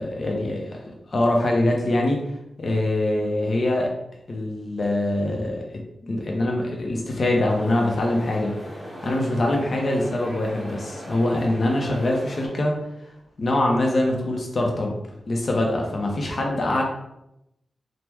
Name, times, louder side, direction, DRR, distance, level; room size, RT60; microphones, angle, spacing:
voice 1, 0.0-2.2 2.6-3.9 4.3-5.6 6.0-8.5 9.0-12.7 13.4-15.0 15.3-16.8, left 1 dB, 50° left, 0 dB, 0.6 m, -23 dB
sound 1, 7.5-12.5, equal, 15° right, 1.1 m, -38 dB
3.0 x 2.1 x 3.4 m, 0.85 s
wide cardioid pair, 120°, 0 cm